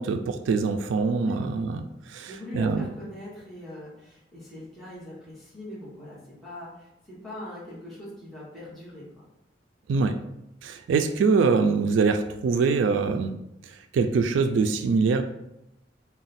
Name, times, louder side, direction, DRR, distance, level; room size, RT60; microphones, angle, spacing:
voice 1, 0.0-2.8 9.9-10.2 10.6-13.3 13.6-15.2, right 4 dB, 90° right, 7 dB, 0.3 m, -24 dB
voice 2, 2.2-9.1, left 1 dB, ahead, -10 dB, 1.1 m, -41 dB
4.0 x 2.2 x 4.0 m, 0.85 s
head